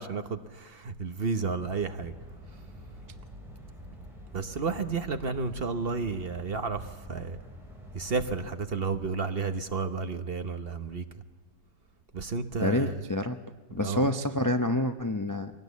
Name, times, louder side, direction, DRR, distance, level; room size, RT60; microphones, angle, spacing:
voice 1, 0.0-2.1 4.3-7.4 7.9-11.1 12.1-13.0 13.8-14.1, right 4 dB, 40° right, 9 dB, 1.0 m, -32 dB
sound 1, 1.6-8.5, equal, ahead, 6.9 m, -47 dB
voice 2, 12.6-13.4 13.7-15.5, left 1 dB, 30° left, 7 dB, 0.3 m, -27 dB
22.5 x 18.0 x 8.3 m, 1.3 s
omnidirectional pair, 1.8 m